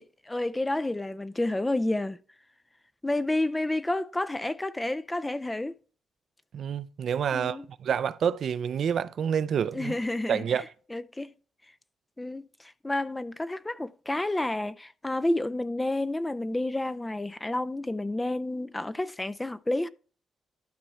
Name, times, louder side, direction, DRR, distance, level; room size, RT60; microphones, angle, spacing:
voice 1, 0.0-2.2 3.0-5.8 7.3-7.7 9.7-10.7 10.9-11.3 12.2-19.9, left 1 dB, 15° left, 0.4 m, -30 dB
voice 2, 6.5-9.9 10.3-10.6, right 8 dB, 60° right, 0.4 m, -28 dB
12.0 x 4.6 x 4.1 m
cardioid pair, 105°, 0 cm